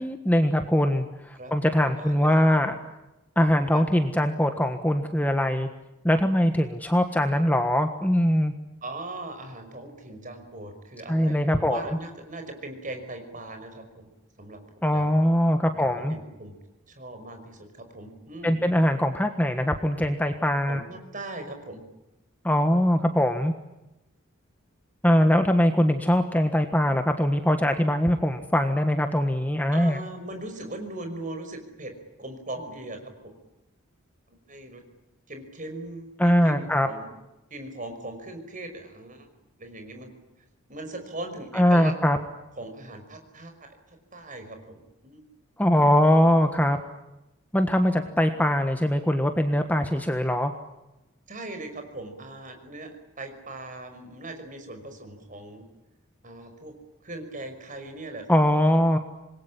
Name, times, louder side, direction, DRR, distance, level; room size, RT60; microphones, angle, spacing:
voice 1, 0.0-2.8 3.4-5.7 6.0-8.5 11.1-11.8 14.8-16.2 18.4-20.8 22.4-23.5 25.0-30.0 36.2-36.9 41.5-42.2 45.6-46.8 47.5-50.5 58.3-59.0, equal, 5° left, 6 dB, 1.4 m, -22 dB
voice 2, 2.0-2.3 3.7-3.8 8.8-14.1 14.4-14.6 14.9-15.1 15.7-16.6 16.9-18.6 20.7-21.8 29.7-31.9 32.2-33.3 34.3-34.8 35.3-37.1 37.5-39.3 39.6-40.1 40.7-41.9 42.6-45.2 51.3-55.6 56.2-56.7 57.0-58.4, right 2 dB, 35° right, 6 dB, 5.5 m, -39 dB
27.0 x 21.5 x 9.9 m, 0.96 s
head